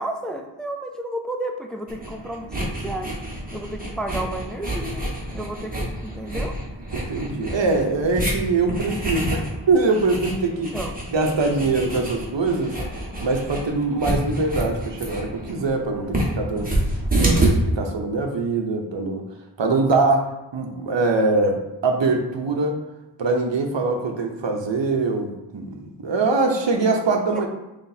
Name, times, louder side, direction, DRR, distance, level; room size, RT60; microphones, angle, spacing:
voice 1, 0.0-3.1 3.5-5.0 5.3-6.5 10.7-11.0 26.4-26.9 27.3-27.5, right 1 dB, ahead, 3 dB, 0.5 m, -32 dB
sound 1, 1.9-17.5, right 1 dB, 20° right, 1.3 m, -28 dB
voice 2, 6.9-10.7 11.1-12.8 13.2-16.8 17.1-19.3 19.6-22.8 23.2-27.5, right 3 dB, 75° right, 3 dB, 0.8 m, -23 dB
5.8 x 3.2 x 2.7 m, 1.0 s
wide cardioid pair, 55°, 45 cm